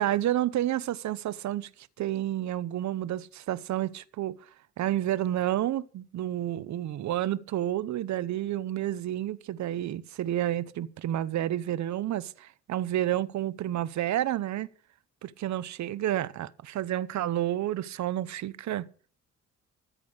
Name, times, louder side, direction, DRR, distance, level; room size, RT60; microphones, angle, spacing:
voice 1, 0.0-1.7 2.0-4.4 4.8-14.7 15.2-18.9, right 12 dB, 65° right, 0.9 m, -30 dB
14.0 x 8.3 x 6.4 m
cardioid pair, 90°, 30 cm